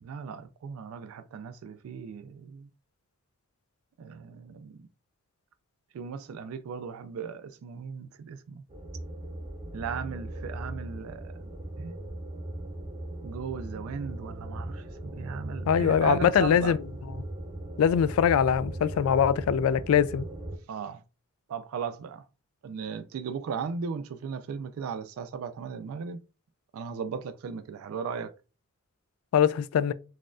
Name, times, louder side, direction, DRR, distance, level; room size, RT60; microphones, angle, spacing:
voice 1, 0.0-2.7 4.0-4.7 5.9-8.6 9.7-11.5 11.8-11.9 13.2-14.8 15.1-16.7 20.7-21.0 21.5-22.2 22.6-26.2 26.7-28.3, right 6 dB, 85° right, 0.3 m, -36 dB
sound 1, 8.7-20.6, right 1 dB, 25° right, 0.6 m, -38 dB
voice 2, 15.7-16.8 17.8-20.3 29.3-29.9, left 8 dB, 85° left, 0.3 m, -22 dB
4.1 x 2.3 x 2.4 m
head